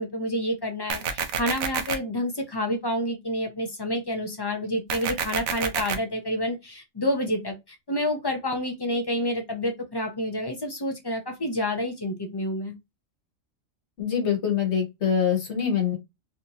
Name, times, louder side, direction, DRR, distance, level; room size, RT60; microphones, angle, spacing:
voice 1, 0.0-12.7, left 1 dB, 35° left, 0.4 m, -29 dB
sound 1, 0.9-1.9 4.9-5.9, right 6 dB, 70° right, 0.9 m, -28 dB
voice 2, 14.0-16.0, left 7 dB, 60° left, 1.3 m, -24 dB
3.3 x 2.7 x 2.7 m
omnidirectional pair, 1.3 m